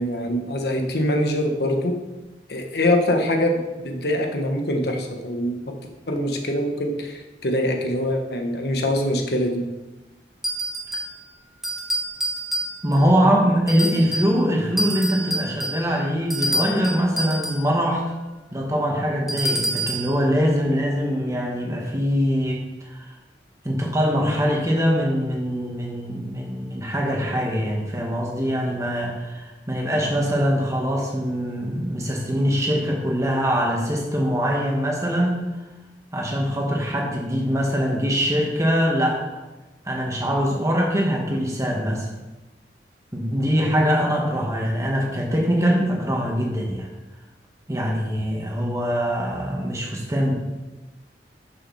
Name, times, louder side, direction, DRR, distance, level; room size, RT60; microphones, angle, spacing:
voice 1, 0.0-1.9 2.5-5.7 6.1-9.7, left 1 dB, 65° left, 3 dB, 1.3 m, -24 dB
sound 1, 10.4-11.2 11.6-13.1 13.7-14.4 14.8-17.7 19.3-20.1, right 1 dB, ahead, 1.4 m, -28 dB
voice 2, 12.8-18.0 18.5-23.1 23.6-35.4 36.1-39.2 39.8-42.1 43.1-46.9 47.7-50.3, equal, 15° right, -1 dB, 1.7 m, -23 dB
12.0 x 6.3 x 4.2 m, 1.1 s
head